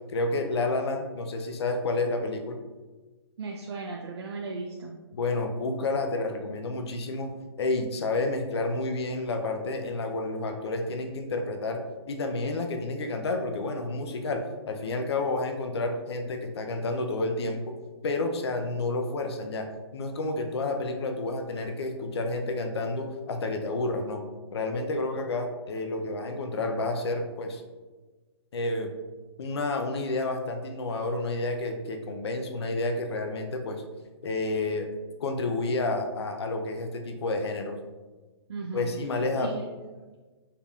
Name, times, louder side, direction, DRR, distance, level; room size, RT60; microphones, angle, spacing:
voice 1, 0.1-2.6 5.1-7.3 7.6-11.8 12.1-14.4 14.7-17.6 18.0-19.7 19.9-24.2 24.5-27.6 28.5-28.9 29.4-33.8 34.2-34.9 35.2-37.8 38.7-39.5, left 2 dB, 65° left, 4 dB, 0.5 m, -30 dB
voice 2, 3.4-4.9 38.5-38.9 39.4-39.7, right 3 dB, 70° right, 0 dB, 0.4 m, -36 dB
4.5 x 3.5 x 2.3 m, 1.3 s
hypercardioid pair, 175°, 15 cm